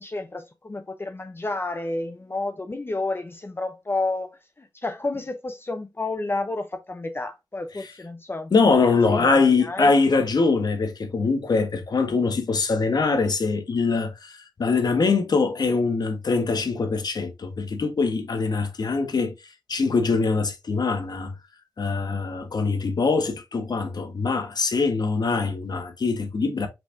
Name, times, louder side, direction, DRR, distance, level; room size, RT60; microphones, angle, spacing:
voice 1, 0.0-4.3 4.6-8.5 9.1-9.9, left 2 dB, 30° left, 0.6 m, -30 dB
voice 2, 8.5-19.3 19.7-21.3 21.8-26.7, left 4 dB, 65° left, 1.2 m, -23 dB
5.8 x 3.5 x 2.6 m
cardioid pair, 60°, 7 cm